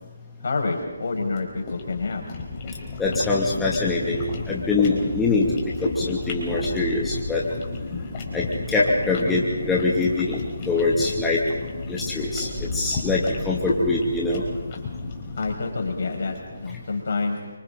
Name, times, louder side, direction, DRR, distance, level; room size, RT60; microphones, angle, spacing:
voice 1, 0.4-2.2 15.4-17.4, left 3 dB, 60° left, 3 dB, 5.6 m, -27 dB
sound 1, 1.3-16.5, left 3 dB, 30° left, 4.7 m, -32 dB
voice 2, 3.0-5.5 5.8-7.4 8.3-10.4 10.7-11.4 11.9-14.4, left 3 dB, 5° left, -5 dB, 2.3 m, -24 dB
30.0 x 26.0 x 4.0 m, 1.2 s
figure-of-eight pair, 155°, 0 cm